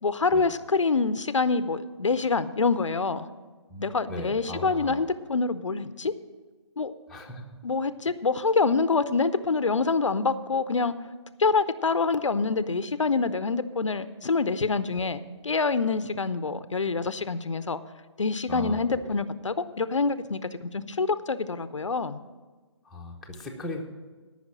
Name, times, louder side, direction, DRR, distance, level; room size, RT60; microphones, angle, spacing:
voice 1, 0.0-3.3 3.8-6.1 6.8-6.9 7.6-10.9 11.4-17.8 18.2-22.2, left 4 dB, 80° left, 13 dB, 0.6 m, -26 dB
voice 2, 3.7-5.0 7.1-7.4 15.0-15.1 18.5-19.1 22.8-23.8, left 1 dB, ahead, -3 dB, 0.9 m, -38 dB
13.5 x 5.8 x 7.4 m, 1.3 s
figure-of-eight pair, 145°, 16 cm